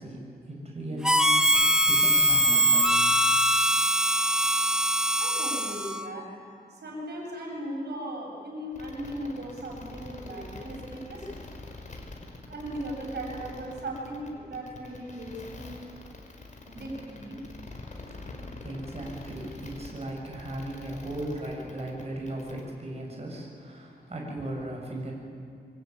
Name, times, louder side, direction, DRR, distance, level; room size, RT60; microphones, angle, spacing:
voice 1, 0.0-1.6 1.9-3.0 18.0-18.2 18.6-25.1, right 1 dB, 40° right, -1 dB, 7.3 m, -37 dB
Harmonica, 1.0-6.1, right 1 dB, 5° right, 1.3 m, -22 dB
voice 2, 5.2-6.2 6.7-11.3 12.5-15.8 16.6-17.4, right 1 dB, 85° right, -1 dB, 7.5 m, -37 dB
sound 1, 8.7-22.6, left 2 dB, 50° left, 5.0 m, -44 dB
26.0 x 24.5 x 9.4 m, 2.4 s
wide cardioid pair, 95°, 17 cm